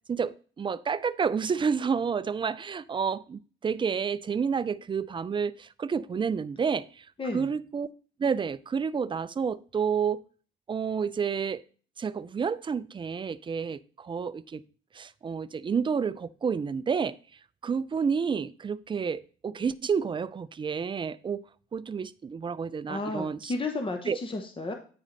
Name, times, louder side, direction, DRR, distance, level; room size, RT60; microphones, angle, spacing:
voice 1, 0.1-7.0 7.3-7.9 8.2-10.2 10.7-11.6 12.0-14.6 14.9-17.2 17.6-21.4 21.7-23.5 24.1-24.2, right 6 dB, 25° right, 0.4 m, -30 dB
voice 2, 22.9-24.7, left 2 dB, 25° left, 1.0 m, -33 dB
8.6 x 4.9 x 4.0 m
cardioid pair, 90°, 20 cm